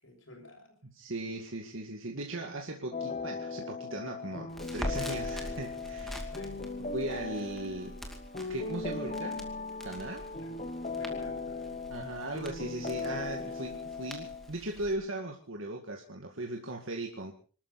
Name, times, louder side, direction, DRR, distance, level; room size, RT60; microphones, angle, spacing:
voice 1, 0.0-0.8 6.3-6.7 10.4-10.6 10.9-11.8, left 1 dB, 65° left, 1 dB, 7.4 m, -52 dB
voice 2, 0.8-6.3 6.9-8.0 8.5-9.5 9.8-10.3 11.9-17.3, right 2 dB, 65° right, 2 dB, 2.1 m, -38 dB
sound 1, 2.9-14.5, left 3 dB, 35° left, 1.1 m, -38 dB
Crackle, 4.5-14.9, equal, ahead, 2.5 m, -44 dB
26.0 x 13.0 x 4.2 m, 0.40 s
head